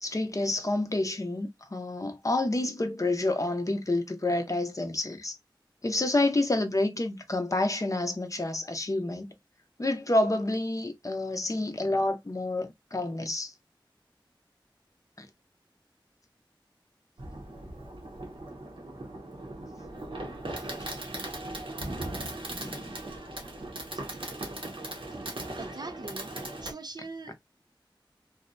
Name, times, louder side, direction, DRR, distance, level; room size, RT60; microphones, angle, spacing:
voice 1, 0.0-5.4 5.8-9.3 9.8-13.5 15.2-15.3 20.7-20.8 22.5-23.0, left 2 dB, 40° left, 0.6 m, -29 dB
Fireworks, 17.2-26.7, right 1 dB, 80° right, 0.8 m, -38 dB
voice 2, 25.6-26.3 26.6-27.3, right 3 dB, 50° right, 0.3 m, -41 dB
2.6 x 2.1 x 2.5 m
wide cardioid pair, 50°, 9 cm